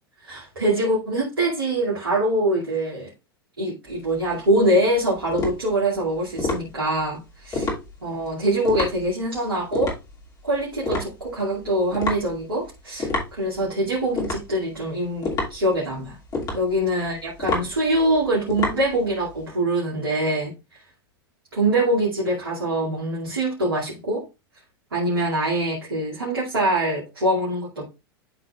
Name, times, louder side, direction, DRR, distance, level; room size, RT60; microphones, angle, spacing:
voice 1, 0.2-3.1 3.6-7.7 8.0-9.9 10.4-16.2 16.5-20.8 21.5-24.2 24.9-27.8, right 1 dB, 70° right, -6 dB, 2.4 m, -24 dB
sound 1, 3.9-19.4, left 3 dB, 30° left, 2.6 m, -31 dB
12.0 x 4.0 x 2.4 m, 0.27 s
figure-of-eight pair, 90°, 13 cm